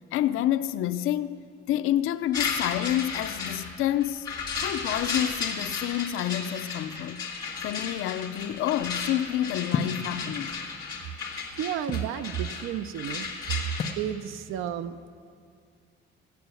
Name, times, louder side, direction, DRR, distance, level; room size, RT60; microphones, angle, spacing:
voice 1, 0.0-4.3 4.6-7.2 7.6-10.6, left 12 dB, 90° left, 0.5 m, -28 dB
sound 1, 2.3-13.9, left 5 dB, 20° left, 1.6 m, -34 dB
sound 2, 9.7-10.1 10.9-12.1 13.8-14.1, left 5 dB, 40° left, 0.7 m, -31 dB
voice 2, 11.6-13.3 14.0-15.1, right 10 dB, 75° right, 0.6 m, -32 dB
14.5 x 9.2 x 6.8 m
cardioid pair, 175°, 21 cm